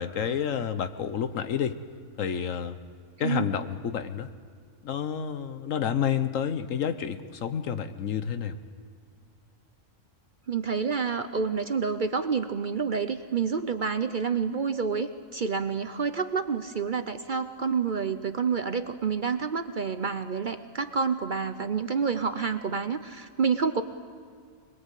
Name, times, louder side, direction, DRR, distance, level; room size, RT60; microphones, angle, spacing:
voice 1, 0.0-1.8 2.2-2.8 3.2-4.3 4.8-8.6, left 8 dB, 70° left, 11 dB, 1.3 m, -29 dB
voice 2, 10.5-23.8, right 5 dB, 45° right, 9 dB, 0.7 m, -28 dB
25.5 x 21.0 x 8.3 m, 2.1 s
omnidirectional pair, 1.4 m